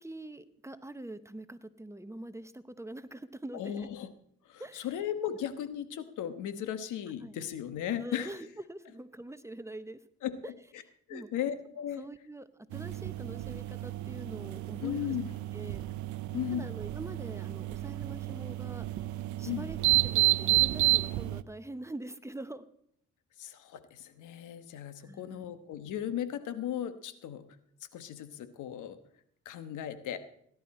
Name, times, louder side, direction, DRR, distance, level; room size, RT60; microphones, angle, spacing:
voice 1, 0.0-3.9 4.6-4.9 7.2-7.3 7.9-10.0 10.4-10.5 11.1-11.3 12.0-15.1 15.5-15.9 16.5-18.8 19.4-22.7 25.0-25.5, right 1 dB, 10° right, 12 dB, 0.8 m, -44 dB
voice 2, 3.5-4.1 4.4-8.3 10.2-10.8 11.1-12.0 14.8-15.3 16.3-16.7 19.5-19.7 23.4-27.4 27.9-29.0 29.4-30.2, left 10 dB, 80° left, 11 dB, 1.2 m, -36 dB
sound 1, 12.7-21.4, right 18 dB, 70° right, 0.6 m, -31 dB
18.0 x 11.0 x 4.3 m, 0.69 s
cardioid pair, 90°, 30 cm